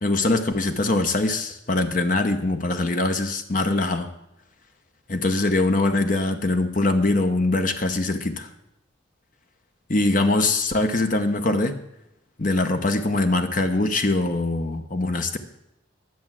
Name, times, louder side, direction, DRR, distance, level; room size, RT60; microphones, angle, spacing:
voice 1, 0.0-4.1 5.1-8.5 9.9-11.8 12.4-15.4, left 2 dB, 40° left, 7 dB, 0.9 m, -22 dB
11.0 x 7.2 x 7.4 m, 0.83 s
head